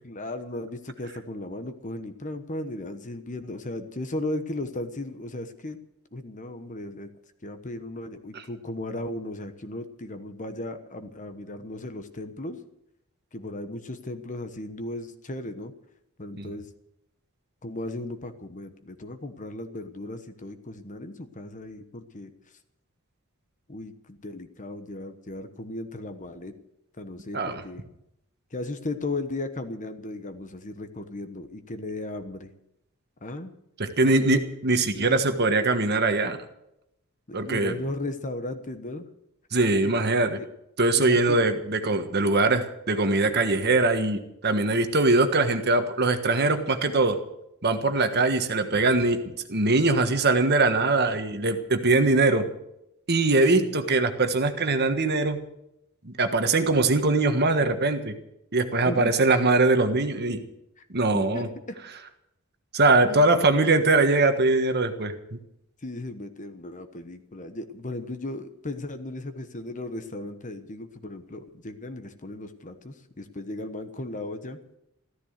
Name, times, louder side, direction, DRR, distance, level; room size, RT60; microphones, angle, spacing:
voice 1, 0.0-5.8 6.1-7.1 7.4-12.6 13.3-15.7 16.2-16.7 17.6-22.3 23.7-26.5 27.0-27.8 28.5-32.5 33.2-33.5 34.0-34.4 34.9-35.2 37.3-39.1 39.8-40.0 40.4-40.5 41.0-41.4 53.6-54.0 58.8-59.1 60.8-60.9 61.1-61.8 63.2-63.3 65.8-74.6, left 2 dB, 35° left, 9 dB, 1.2 m, -36 dB
voice 2, 33.8-36.4 37.3-37.7 39.5-40.4 40.8-47.2 47.6-52.5 53.1-55.4 56.0-58.1 58.5-60.4 60.9-61.5 62.7-65.4, right 3 dB, 50° right, 7 dB, 1.5 m, -22 dB
14.5 x 13.5 x 6.6 m, 0.81 s
head